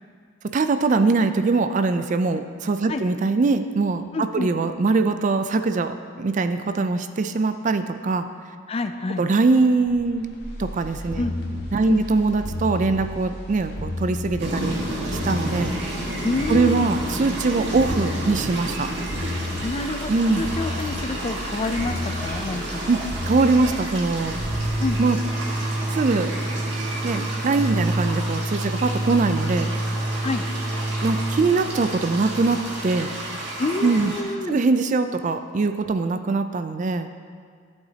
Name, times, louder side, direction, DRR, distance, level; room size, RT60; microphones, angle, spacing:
voice 1, 0.4-8.3 9.2-11.2 11.7-14.9 15.2-15.7 16.5-18.9 20.1-20.5 22.9-24.4 25.0-25.2 25.9-26.3 27.0-29.7 31.0-33.1 33.8-34.1 34.5-37.1, right 3 dB, 40° right, 9 dB, 0.4 m, -22 dB
voice 2, 4.1-4.5 8.7-9.2 11.2-11.3 11.9-12.0 16.2-16.9 19.6-22.9 24.8-25.0 30.2-30.4 33.6-34.6, left 3 dB, 30° left, 8 dB, 0.4 m, -28 dB
sound 1, 9.9-25.9 26.3-26.4, left 1 dB, 55° left, 1.5 m, -33 dB
sound 2, 14.4-34.2, right 1 dB, 60° right, 1.7 m, -32 dB
sound 3, 24.1-33.6, right 1 dB, 85° right, 2.1 m, -28 dB
13.5 x 8.1 x 2.8 m, 2.1 s
head